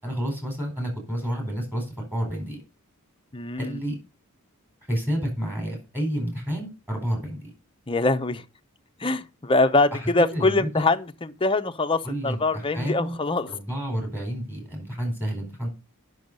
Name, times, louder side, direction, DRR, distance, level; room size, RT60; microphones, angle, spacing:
voice 1, 0.0-2.6 3.6-4.0 4.9-7.5 10.0-10.9 12.0-13.2 13.5-15.7, equal, 10° right, 4.5 m, -30 dB
voice 2, 3.3-3.8 7.9-8.4 9.0-13.5, left 2 dB, 25° left, 0.7 m, -23 dB
10.5 x 6.4 x 5.3 m
head